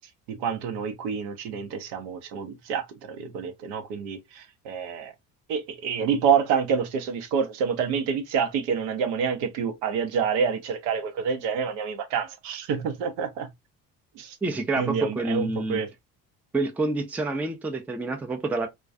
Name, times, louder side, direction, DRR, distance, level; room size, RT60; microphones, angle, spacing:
voice 1, 0.3-5.1 5.5-13.5 14.1-14.4 14.8-15.9, right 6 dB, 70° right, 0.7 m, -27 dB
voice 2, 14.4-15.8 16.5-18.7, right 2 dB, 5° right, 0.4 m, -28 dB
2.3 x 2.3 x 2.4 m
hypercardioid pair, 60°, 44 cm